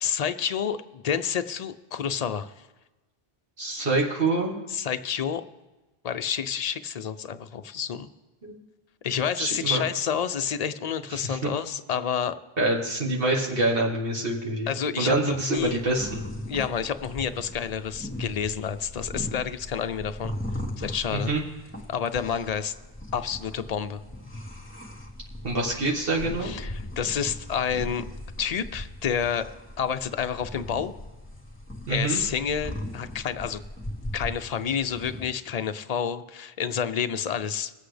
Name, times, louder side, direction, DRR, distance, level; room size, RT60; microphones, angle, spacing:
voice 1, 0.0-2.5 4.7-5.4 6.0-8.1 9.0-12.4 14.7-15.8 16.5-20.3 20.8-21.3 21.9-22.7 23.1-24.0 26.4-28.0 28.4-29.5 29.8-30.9 31.9-33.6 34.1-37.7, left 7 dB, 50° left, 10 dB, 0.5 m, -29 dB
voice 2, 3.6-4.5 8.4-8.6 9.4-9.8 11.1-11.4 12.6-14.7 15.0-16.2 21.3-21.4 25.4-26.5 31.9-32.2, right 2 dB, 65° right, -3 dB, 1.7 m, -26 dB
sound 1, 15.6-35.3, left 1 dB, 10° left, 1.6 m, -39 dB
21.5 x 8.2 x 3.3 m, 1.1 s
omnidirectional pair, 1.0 m